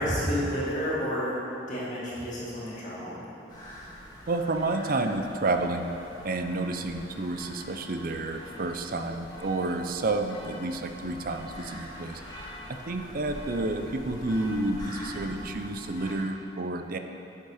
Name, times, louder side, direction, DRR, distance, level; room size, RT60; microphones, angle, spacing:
voice 1, 0.0-1.4 1.7-3.2, equal, 40° left, -7 dB, 2.2 m, -30 dB
sound 1, 3.5-16.1, left 1 dB, 20° left, 1.8 m, -44 dB
voice 2, 4.3-5.9 6.2-12.2 12.9-17.0, right 2 dB, 50° right, 6 dB, 0.5 m, -30 dB
10.5 x 6.7 x 5.0 m, 2.9 s
head